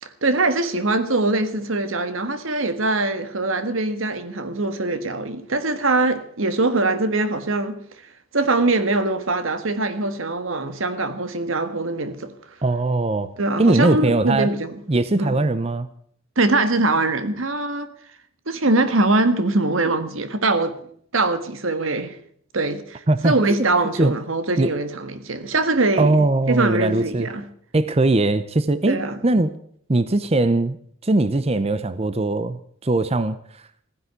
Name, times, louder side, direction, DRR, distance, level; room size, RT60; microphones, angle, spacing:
voice 1, 0.0-7.8 8.3-12.3 13.4-14.8 15.2-15.4 16.3-17.9 18.5-20.8 21.1-22.2 22.5-26.1 26.5-27.4 28.9-29.2, right 2 dB, 85° right, 1.6 m, -22 dB
voice 2, 12.6-13.3 13.6-14.5 14.9-15.9 23.1-23.4 24.0-24.1 24.6-24.7 26.0-27.3 27.7-29.0 29.2-29.5 29.9-30.8 31.0-33.4, right 2 dB, 30° right, 0.7 m, -20 dB
15.5 x 10.5 x 8.1 m
head